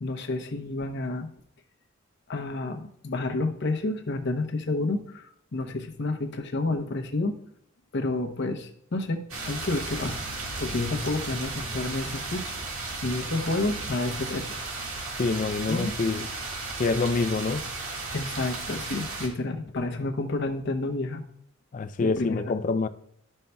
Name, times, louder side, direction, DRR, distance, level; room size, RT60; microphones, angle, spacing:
voice 1, 0.0-1.3 2.3-7.3 7.9-10.2 10.6-12.5 13.0-14.5 15.7-15.9 18.1-21.2 22.0-22.6, left 2 dB, 55° left, 0.8 m, -30 dB
sound 1, 9.3-19.3, right 3 dB, 75° right, 1.7 m, -35 dB
voice 2, 15.2-16.3 16.8-17.7 21.7-22.9, left 4 dB, 40° left, 0.3 m, -26 dB
12.0 x 5.4 x 2.2 m
head